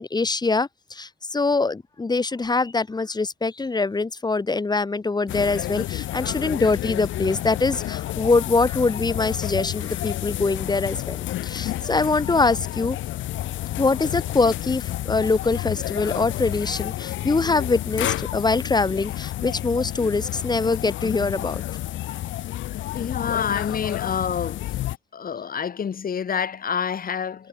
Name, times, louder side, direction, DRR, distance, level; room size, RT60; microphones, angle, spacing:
voice 1, 0.0-11.2 11.4-13.0 13.8-21.6, left 3 dB, 20° left, 1.2 m, -23 dB
sound 1, 5.3-25.0, left 14 dB, 75° left, 0.7 m, -30 dB
voice 2, 22.9-24.6 25.1-27.5, left 7 dB, 45° left, 2.4 m, -27 dB
cardioid pair, 90°, 20 cm